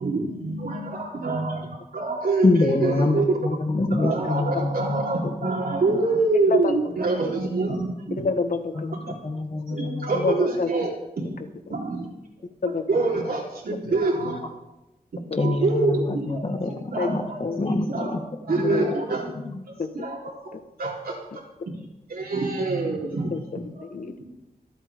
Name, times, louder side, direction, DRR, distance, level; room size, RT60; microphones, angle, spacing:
voice 1, 0.0-3.4 3.9-8.2 8.9-9.2 9.7-10.9 11.2-11.4 11.7-12.1 12.9-14.4 15.3-16.5 16.9-17.4 17.9-18.2 18.4-19.3 19.7-21.7 22.1-23.3 24.0-24.3, right 3 dB, 85° right, -3 dB, 3.7 m, -26 dB
voice 2, 2.4-5.5 5.9-6.0 8.8-10.3 15.3-16.7 17.0-18.2 18.5-18.8 19.4-19.6, left 2 dB, 40° left, 5 dB, 1.6 m, -25 dB
voice 3, 4.2-4.6 6.5-6.7 8.2-8.9 10.1-10.7 12.6-12.8 15.3-15.4 16.0-16.2 17.0-17.1 17.4-17.7 18.6-18.9 19.8-19.9 20.5-20.6 23.0-24.2, left 4 dB, 60° left, 8 dB, 1.3 m, -28 dB
25.0 x 8.9 x 3.6 m, 0.95 s
wide cardioid pair, 115°, 15 cm